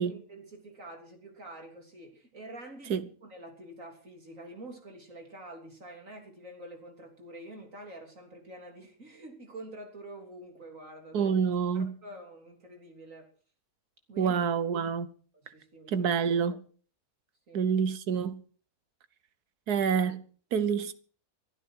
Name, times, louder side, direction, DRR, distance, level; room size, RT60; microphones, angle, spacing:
voice 1, 0.0-11.3 11.7-13.3 14.1-14.4 15.5-16.1 17.5-17.6, right 1 dB, 55° right, 3.8 m, -47 dB
voice 2, 11.1-12.0 14.2-15.1 15.9-16.6 17.5-18.4 19.7-20.2 20.5-20.9, right 6 dB, 80° right, 1.6 m, -27 dB
22.5 x 12.0 x 4.6 m
omnidirectional pair, 1.6 m